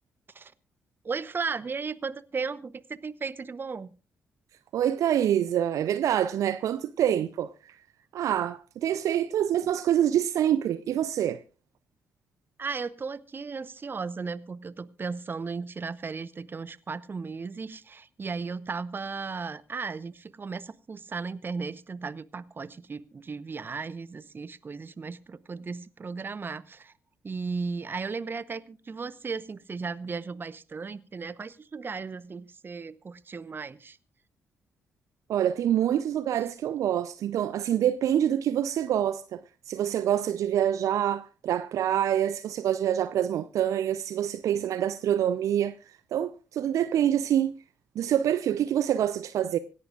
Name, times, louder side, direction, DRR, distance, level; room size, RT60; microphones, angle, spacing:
voice 1, 1.0-3.9 12.6-26.9 27.2-34.0, right 4 dB, 35° right, 0.8 m, -35 dB
voice 2, 4.7-7.7 8.1-11.4 35.3-39.4 39.7-45.7 46.1-47.5 48.0-49.6, right 10 dB, 60° right, 0.5 m, -26 dB
25.5 x 11.0 x 2.4 m
figure-of-eight pair, 40°, 6 cm